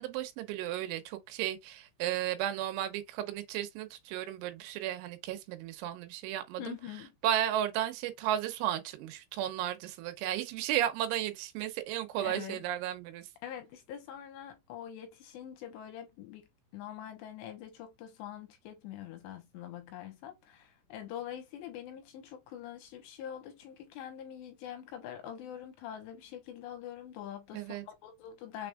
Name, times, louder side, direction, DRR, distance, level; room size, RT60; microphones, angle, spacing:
voice 1, 0.0-6.8 7.2-13.3 27.5-27.9, right 12 dB, 90° right, 3.2 m, -34 dB
voice 2, 6.6-7.1 12.2-12.6 13.4-16.5 16.7-28.7, left 10 dB, 80° left, 2.9 m, -44 dB
6.7 x 3.5 x 2.3 m
omnidirectional pair, 5.4 m